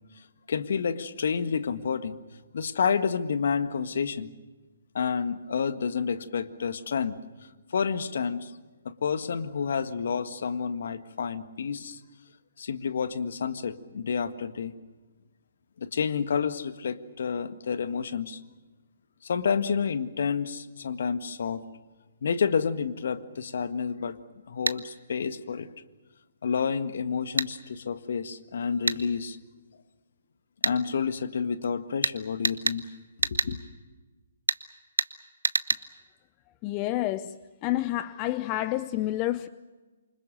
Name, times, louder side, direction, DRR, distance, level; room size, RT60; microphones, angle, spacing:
voice 1, 0.5-2.2 2.5-4.3 4.9-7.2 7.7-8.5 9.0-12.0 12.6-14.7 15.8-18.4 19.2-21.6 22.2-24.2 24.5-25.7 26.4-29.4 30.6-32.9 33.2-33.6, left 6 dB, 55° left, 1.7 m, -29 dB
sound 1, 24.7-24.8 27.4-27.5 28.9-29.0 30.6-30.8 32.0-32.2 32.4-32.8 33.2-33.5 34.5-34.6 35.0-35.1 35.4-35.8, right 4 dB, 70° right, 1.1 m, -26 dB
voice 2, 36.6-39.5, left 15 dB, 25° left, 0.7 m, -29 dB
28.0 x 25.0 x 6.5 m
figure-of-eight pair, 130°, 0 cm